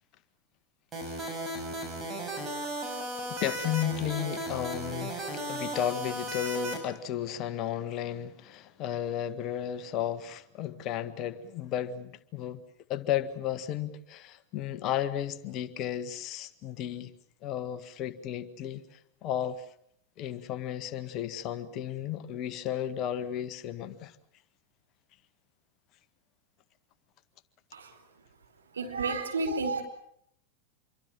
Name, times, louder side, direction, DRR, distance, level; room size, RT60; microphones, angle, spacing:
sound 1, 0.9-6.8, right 1 dB, 20° right, 7.1 m, -35 dB
voice 1, 1.0-1.4 3.3-12.6 12.9-17.1 17.4-19.6 20.2-24.1, left 10 dB, 35° left, 1.6 m, -34 dB
voice 2, 28.7-29.8, right 3 dB, 70° right, 4.7 m, -31 dB
26.5 x 24.0 x 7.3 m
figure-of-eight pair, 90°, 0 cm